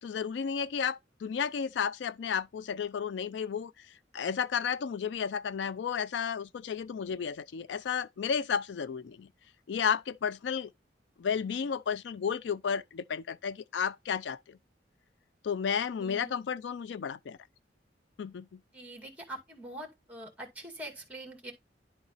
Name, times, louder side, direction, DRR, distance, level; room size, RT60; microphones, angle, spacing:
voice 1, 0.0-9.3 9.7-10.7 11.2-14.6 15.4-17.4 18.2-18.6, left 7 dB, 80° left, 0.4 m, -33 dB
voice 2, 16.0-16.4 18.7-21.5, right 1 dB, 10° right, 2.2 m, -44 dB
11.0 x 4.0 x 4.0 m
head